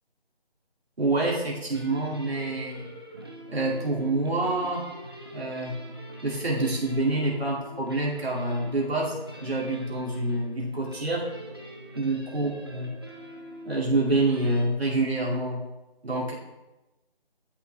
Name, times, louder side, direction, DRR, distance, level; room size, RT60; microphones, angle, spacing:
voice 1, 1.0-2.8 3.5-4.8 5.3-5.8 6.2-9.1 9.4-11.2 12.0-12.9 13.7-15.6 16.0-16.3, right 2 dB, 85° right, -3 dB, 2.4 m, -27 dB
sound 1, 1.7-14.6, equal, 25° right, 0.8 m, -44 dB
9.6 x 8.4 x 3.3 m, 1.1 s
figure-of-eight pair, 170°, 30 cm